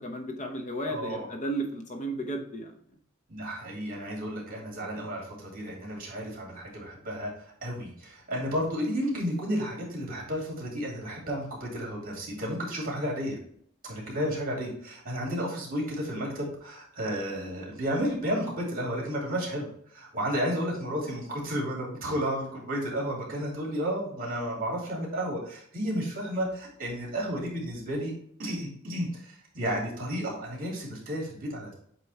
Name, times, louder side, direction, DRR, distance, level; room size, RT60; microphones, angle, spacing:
voice 1, 0.0-2.7, right 1 dB, 35° left, 3 dB, 0.9 m, -34 dB
voice 2, 0.8-1.3 3.3-13.4 13.8-28.1 28.4-31.7, equal, 45° right, -2 dB, 2.9 m, -32 dB
8.0 x 3.1 x 4.3 m, 0.63 s
head